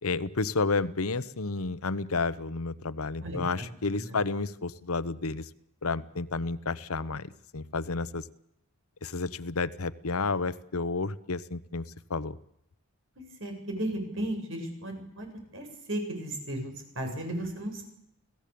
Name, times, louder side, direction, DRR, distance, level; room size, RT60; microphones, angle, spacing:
voice 1, 0.0-5.5 5.8-8.3 9.0-12.4, left 3 dB, 80° left, 15 dB, 1.0 m, -31 dB
voice 2, 13.4-16.7 16.9-17.8, right 1 dB, 60° right, 4 dB, 7.8 m, -35 dB
28.5 x 17.0 x 8.7 m, 0.79 s
head